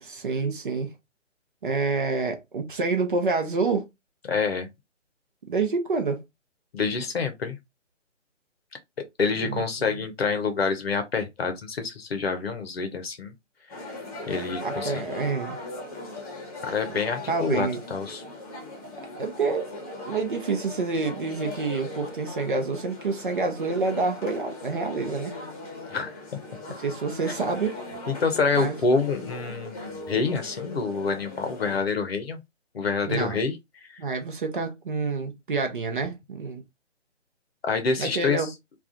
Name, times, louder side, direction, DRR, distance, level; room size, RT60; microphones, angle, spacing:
voice 1, 0.0-0.9 1.6-3.9 5.5-6.2 9.4-9.9 14.6-15.6 16.9-17.0 17.3-17.8 19.2-19.7 20.1-25.4 26.8-27.8 28.5-28.8 33.1-33.4 34.0-36.6 38.0-38.5, right 4 dB, 45° right, 0.7 m, -28 dB
voice 2, 4.3-4.7 6.7-7.6 9.2-13.3 14.3-15.0 16.6-18.2 25.9-26.2 28.1-32.4 32.7-33.6 37.6-38.5, left 4 dB, 55° left, 0.7 m, -27 dB
sound 1, 13.7-31.8, left 2 dB, 30° left, 0.9 m, -39 dB
2.4 x 2.3 x 3.7 m
figure-of-eight pair, 140°, 37 cm